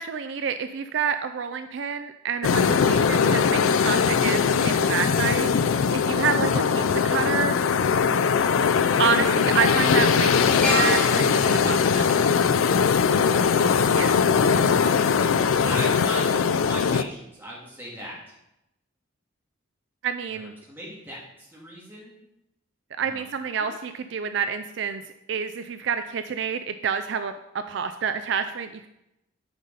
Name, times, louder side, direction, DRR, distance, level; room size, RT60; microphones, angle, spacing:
voice 1, 0.0-5.5 5.9-7.6 9.0-12.1 13.9-14.2 20.0-20.5 23.0-25.0 25.3-27.3 27.7-28.9, right 6 dB, 60° right, 10 dB, 0.3 m, -28 dB
sound 1, 2.4-17.0, left 6 dB, 80° left, 0.4 m, -21 dB
sound 2, 9.4-13.6 13.9-14.1, left 1 dB, 5° left, 1.1 m, -31 dB
voice 2, 13.3-13.8 14.5-15.1 15.6-18.3 20.3-22.1 23.0-23.3 23.6-23.9, equal, 10° right, -5 dB, 2.1 m, -38 dB
9.5 x 5.4 x 4.0 m, 0.87 s
head